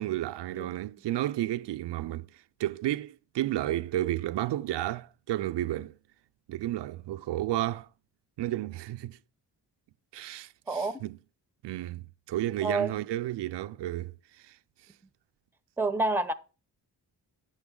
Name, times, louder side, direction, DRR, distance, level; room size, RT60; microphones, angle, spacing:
voice 1, 0.0-6.0 6.5-7.9 8.4-9.2 10.1-11.2 11.6-14.6, right 14 dB, 80° right, 0.5 m, -32 dB
voice 2, 12.6-12.9 15.8-16.3, right 2 dB, 5° right, 0.7 m, -28 dB
8.9 x 7.1 x 3.7 m
cardioid pair, 60°, 41 cm